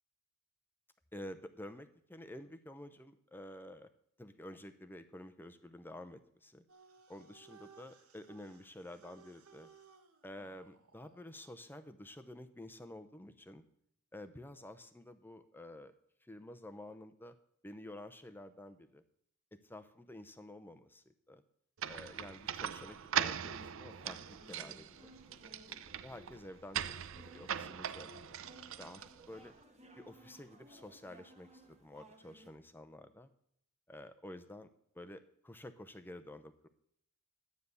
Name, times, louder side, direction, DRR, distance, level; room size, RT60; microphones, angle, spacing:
voice 1, 1.1-3.9 4.2-6.6 7.1-9.7 10.2-13.6 14.1-15.9 16.2-17.4 17.6-19.0 19.5-21.4 21.9-25.1 25.5-25.6 26.0-28.4 28.8-29.5 30.0-33.3 33.9-34.7 34.9-36.7, left 1 dB, 10° left, 8 dB, 0.7 m, -50 dB
sound 1, 6.7-11.4, right 6 dB, 85° right, 1.6 m, -61 dB
sound 2, 21.8-29.4, right 9 dB, 65° right, 0.6 m, -40 dB
sound 3, 23.3-32.5, right 1 dB, 30° right, 1.8 m, -59 dB
12.0 x 9.4 x 6.9 m, 0.68 s
head